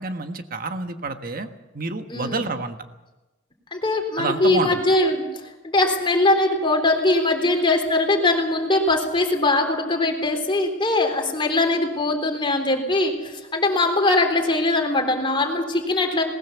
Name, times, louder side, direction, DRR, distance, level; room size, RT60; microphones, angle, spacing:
voice 1, 0.0-1.5 1.7-2.8 4.2-4.8, right 3 dB, 50° right, 7 dB, 1.4 m, -28 dB
voice 2, 2.1-2.4 3.7-5.3 5.6-16.2, left 2 dB, 25° left, 3 dB, 3.5 m, -21 dB
20.5 x 19.5 x 7.0 m, 1.1 s
head